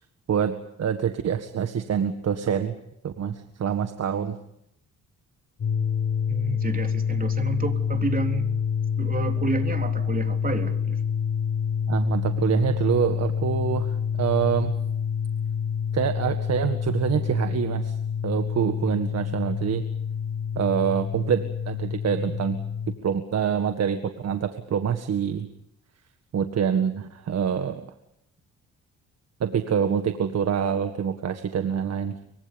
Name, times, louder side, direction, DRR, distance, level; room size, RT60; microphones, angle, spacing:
voice 1, 0.3-2.8 3.0-4.4 11.9-13.9 14.2-14.7 15.9-18.0 18.2-19.8 20.6-22.6 23.0-25.5 26.3-27.8 29.4-32.2, right 8 dB, 55° right, 8 dB, 1.8 m, -26 dB
sound 1, 5.6-23.0, left 7 dB, 55° left, 6.3 m, -27 dB
voice 2, 6.3-8.5 9.0-11.0, right 4 dB, 30° right, 5 dB, 3.7 m, -30 dB
29.0 x 24.5 x 5.4 m, 0.75 s
cardioid pair, 90°, 30 cm